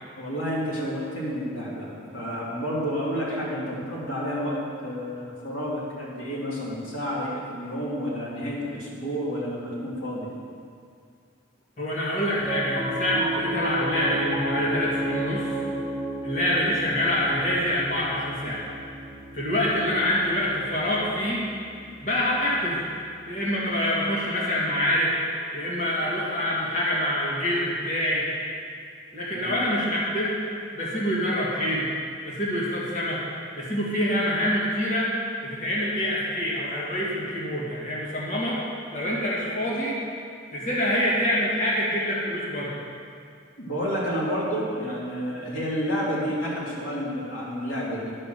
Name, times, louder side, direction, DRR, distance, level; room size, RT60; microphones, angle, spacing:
voice 1, 0.2-10.3 29.3-29.5 43.6-48.1, equal, 80° left, -6 dB, 2.7 m, -30 dB
voice 2, 11.8-15.5 16.2-18.7 19.3-21.4 22.0-22.8 23.3-25.1 25.5-28.3 29.1-30.3 30.7-31.9 32.2-33.2 33.6-35.1 35.4-38.6 38.9-40.0 40.5-42.8, left 1 dB, 40° left, -6 dB, 1.9 m, -26 dB
Piano, 12.4-22.9, right 1 dB, 20° right, 1.1 m, -33 dB
10.0 x 5.5 x 6.6 m, 2.3 s
head